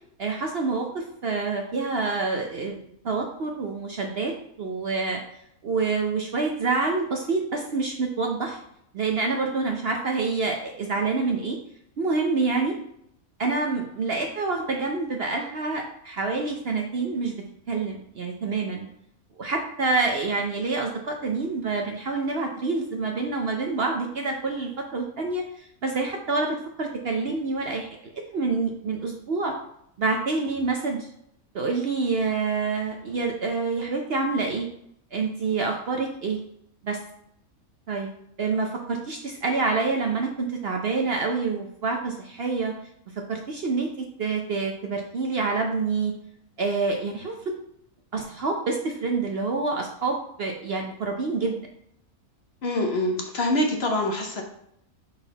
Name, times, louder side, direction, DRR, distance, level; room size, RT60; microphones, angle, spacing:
voice 1, 0.2-2.8 3.0-5.2 5.6-8.6 8.9-11.6 12.0-12.7 13.4-17.3 17.7-18.9 19.4-29.5 30.0-31.1 31.5-34.7 35.1-36.4 36.8-37.0 37.9-38.1 38.4-42.7 43.3-46.1 46.6-47.3 48.1-51.6, right 4 dB, 55° right, 2 dB, 0.7 m, -27 dB
voice 2, 52.6-54.4, left 1 dB, 55° left, 2 dB, 0.9 m, -25 dB
5.7 x 4.2 x 4.0 m, 0.74 s
omnidirectional pair, 1.6 m